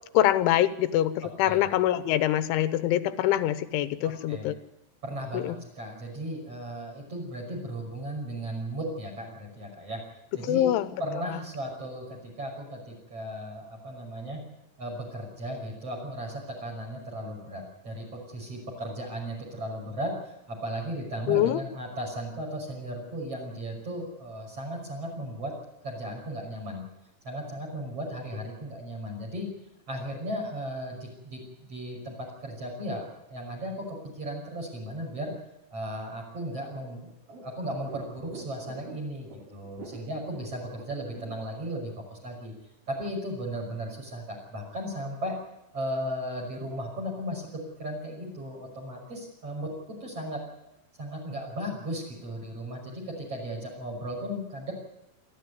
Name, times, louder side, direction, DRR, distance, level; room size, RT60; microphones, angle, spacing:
voice 1, 0.1-4.5 5.3-5.6 10.4-10.9 21.3-21.6, left 13 dB, 90° left, 13 dB, 3.5 m, -24 dB
voice 2, 4.0-4.6 5.0-10.0 10.4-10.7 11.0-14.4 14.8-25.5 25.8-26.9 27.2-29.5 29.9-35.3 35.7-37.1 37.4-42.5 42.9-45.4 45.7-50.4 51.0-54.7, equal, 30° right, 3 dB, 6.6 m, -36 dB
sound 1, 36.4-41.7, right 4 dB, 80° right, 6.6 m, -46 dB
27.5 x 13.5 x 9.5 m, 0.91 s
omnidirectional pair, 5.3 m